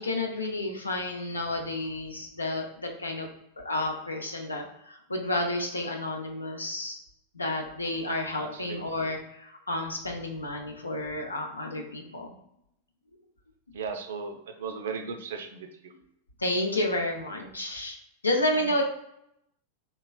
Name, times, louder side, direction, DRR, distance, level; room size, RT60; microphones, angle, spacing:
voice 1, 0.0-3.3 3.6-7.0 7.3-12.3 16.4-18.0 18.2-18.8, left 1 dB, 80° left, 2 dB, 0.5 m, -31 dB
voice 2, 8.4-8.8 13.7-15.9 18.5-18.7, right 5 dB, 60° right, 6 dB, 0.4 m, -37 dB
3.4 x 3.0 x 2.3 m, 0.79 s
figure-of-eight pair, 90°, 0 cm